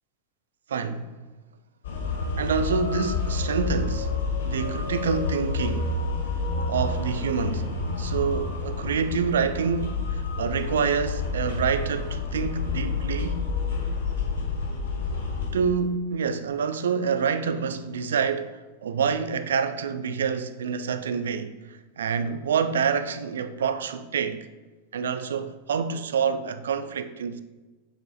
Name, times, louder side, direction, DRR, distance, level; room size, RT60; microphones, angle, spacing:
voice 1, 0.7-1.2 2.4-4.1 4.4-5.9 6.7-7.7 8.0-13.5 15.5-24.5 24.9-27.4, right 6 dB, 65° right, 0.4 m, -27 dB
sound 1, 1.8-15.5, left 4 dB, 60° left, 1.0 m, -29 dB
6.7 x 4.7 x 4.0 m
figure-of-eight pair, 90°, 0 cm